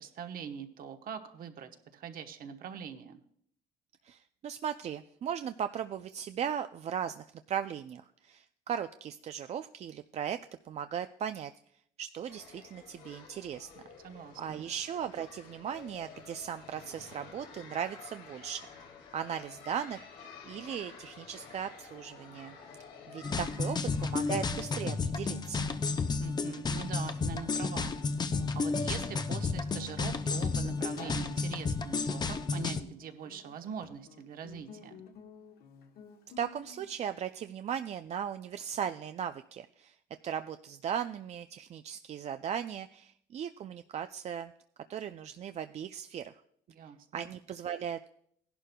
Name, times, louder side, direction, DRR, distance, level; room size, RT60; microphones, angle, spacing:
voice 1, 0.0-3.2 14.0-14.6 26.2-28.0 28.5-35.0 46.7-47.3, right 7 dB, 60° right, 6 dB, 1.1 m, -43 dB
voice 2, 4.0-10.4 10.6-11.5 12.0-13.7 14.4-18.6 19.1-20.1 20.5-22.6 23.1-25.6 36.4-39.9 40.2-44.5 44.9-46.3 47.1-48.1, right 8 dB, 40° right, 9 dB, 0.4 m, -37 dB
sound 1, 12.2-24.6, left 5 dB, 85° left, 2.1 m, -51 dB
sound 2, 23.2-32.8, left 4 dB, 25° left, 0.6 m, -32 dB
Guitar, 27.6-36.9, left 6 dB, 65° left, 1.3 m, -52 dB
16.5 x 11.0 x 2.2 m, 0.67 s
cardioid pair, 110°, 17 cm